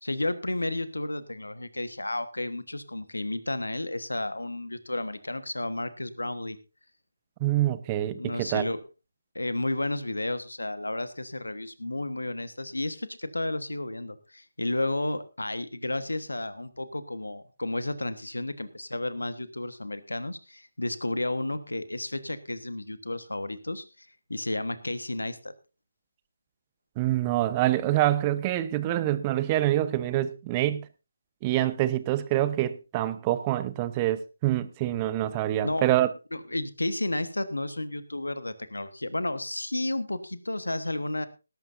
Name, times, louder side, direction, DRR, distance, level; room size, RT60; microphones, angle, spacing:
voice 1, 0.0-6.6 8.2-8.8 9.3-25.5 35.6-35.9 36.3-41.3, left 2 dB, 90° left, 1.3 m, -32 dB
voice 2, 7.4-8.7 27.0-30.9 31.4-36.1, right 14 dB, 20° right, 0.8 m, -26 dB
19.0 x 12.0 x 2.6 m
figure-of-eight pair, 155°, 0 cm